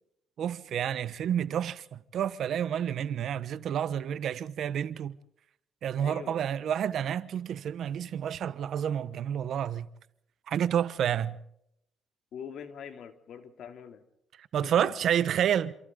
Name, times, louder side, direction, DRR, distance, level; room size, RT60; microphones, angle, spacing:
voice 1, 0.4-5.2 5.8-9.9 10.5-11.4 14.4-15.8, right 9 dB, 70° right, 1.1 m, -29 dB
voice 2, 6.0-6.4 12.3-14.0 14.6-14.9, left 7 dB, 70° left, 2.9 m, -43 dB
28.0 x 27.0 x 3.9 m
cardioid pair, 90°, 0 cm